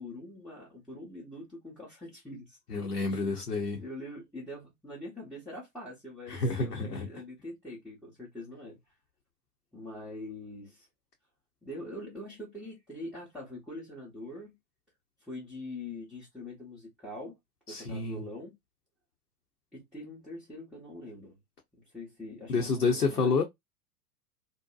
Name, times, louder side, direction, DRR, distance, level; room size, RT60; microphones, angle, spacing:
voice 1, 0.0-2.6 3.1-3.2 3.8-8.9 9.7-10.9 11.6-14.6 15.2-17.3 17.7-18.5 19.7-21.4 21.7-23.4, left 1 dB, ahead, 0.7 m, -43 dB
voice 2, 2.7-3.8 6.3-7.1 17.7-18.2 22.5-23.4, left 4 dB, 80° left, 0.8 m, -29 dB
2.6 x 2.1 x 2.3 m
figure-of-eight pair, 95°, 49 cm